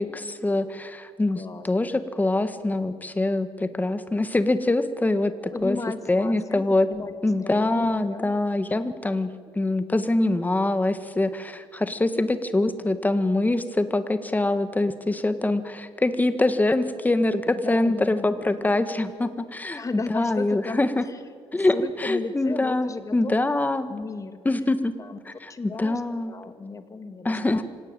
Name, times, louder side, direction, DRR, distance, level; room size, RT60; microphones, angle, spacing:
voice 1, 0.0-5.8 6.1-6.9 7.2-9.3 9.6-21.0 21.5-23.9 24.5-24.9 25.3-26.3 27.3-27.6, left 2 dB, 15° left, 10 dB, 1.8 m, -24 dB
voice 2, 1.3-2.0 5.5-7.1 7.4-8.4 17.6-18.8 19.7-21.2 21.5-23.3 23.9-24.4 25.0-25.2 25.5-27.6, left 4 dB, 35° left, 9 dB, 2.2 m, -35 dB
25.5 x 17.5 x 9.2 m, 2.2 s
cardioid pair, 90°, 10 cm